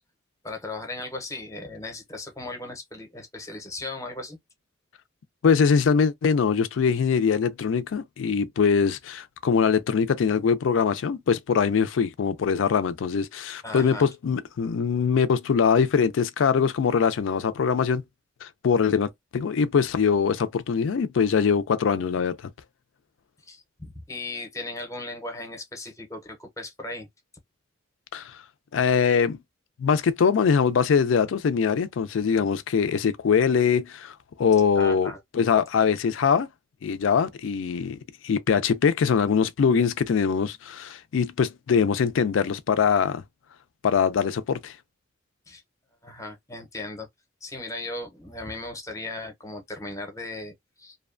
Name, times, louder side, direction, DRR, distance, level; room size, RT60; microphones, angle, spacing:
voice 1, 0.4-4.4 13.6-14.1 23.4-27.1 34.7-35.2 45.5-45.6 46.0-47.1 47.4-51.0, left 2 dB, 15° left, 0.6 m, -37 dB
voice 2, 5.4-18.0 18.4-22.4 28.1-28.4 28.7-29.4 29.8-36.5 36.8-38.0 38.2-43.2 43.8-44.7, left 6 dB, 80° left, 0.4 m, -22 dB
2.6 x 2.2 x 2.4 m
head